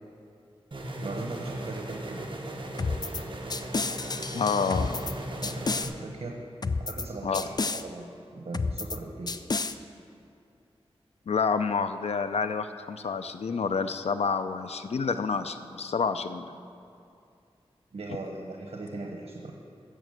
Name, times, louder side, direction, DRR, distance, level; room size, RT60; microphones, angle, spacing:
sound 1, 0.7-5.8, right 1 dB, 50° right, 1.4 m, -37 dB
voice 1, 1.0-2.3 4.8-4.9 5.3-6.4 6.8-8.1 8.3-9.4 17.9-19.5, right 2 dB, 85° right, 0 dB, 1.2 m, -39 dB
sound 2, 2.8-3.2 3.5-5.1 5.4-5.9 6.6-7.1 7.3-7.8 8.5-9.0 9.3-9.7, left 4 dB, 40° left, 0.5 m, -30 dB
voice 2, 4.3-5.0 7.2-7.4 11.3-16.5, left 5 dB, 90° left, 10 dB, 0.6 m, -28 dB
14.0 x 6.2 x 7.9 m, 2.5 s
wide cardioid pair, 70°, 10 cm